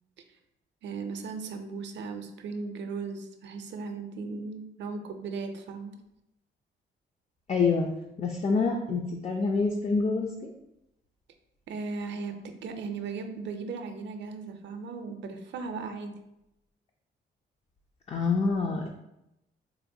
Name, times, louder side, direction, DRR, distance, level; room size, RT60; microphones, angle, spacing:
voice 1, 0.8-5.9 11.7-16.1, right 4 dB, 65° right, 6 dB, 0.5 m, -37 dB
voice 2, 7.5-7.9 8.2-10.5 18.1-18.9, left 4 dB, 30° left, 1 dB, 0.4 m, -26 dB
4.0 x 2.2 x 2.6 m, 0.87 s
cardioid pair, 90°, 20 cm